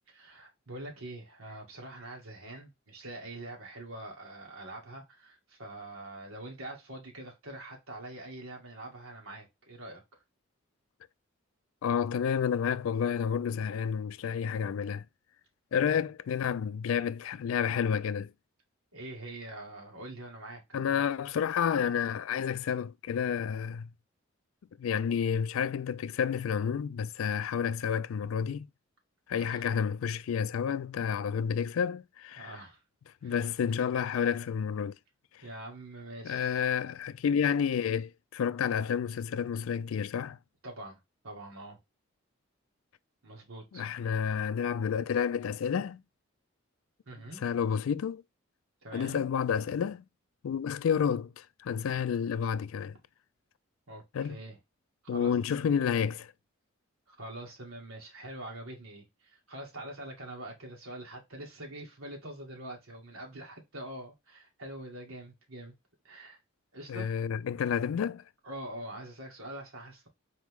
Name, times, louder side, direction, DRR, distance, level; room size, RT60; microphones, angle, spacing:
voice 1, 0.1-10.2 15.8-16.0 18.9-21.0 29.4-29.7 32.4-32.8 33.2-33.3 35.4-36.7 40.6-41.8 43.2-43.9 47.1-47.4 48.8-49.3 53.9-54.6 55.1-55.7 57.1-65.7 66.0-66.4 66.7-67.1 68.4-70.1, right 1 dB, 90° right, 1.9 m, -44 dB
voice 2, 11.8-15.1 15.7-18.3 20.7-23.9 24.8-28.7 29.3-32.5 33.2-34.9 35.3-35.4 36.2-40.4 43.7-46.0 47.4-48.2 48.9-50.0 50.4-53.0 54.1-54.4 55.1-56.3 66.9-68.2, left 7 dB, 75° left, 0.3 m, -30 dB
4.1 x 3.1 x 3.5 m
head